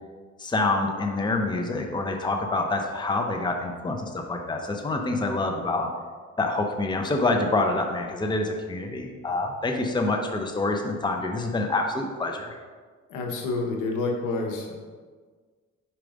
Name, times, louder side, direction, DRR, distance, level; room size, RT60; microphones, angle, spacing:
voice 1, 0.4-5.9 6.4-12.6, left 2 dB, 15° left, 3 dB, 0.7 m, -26 dB
voice 2, 13.1-14.7, left 3 dB, 85° left, 1 dB, 1.1 m, -28 dB
4.9 x 4.6 x 5.1 m, 1.5 s
cardioid pair, 90°, 30 cm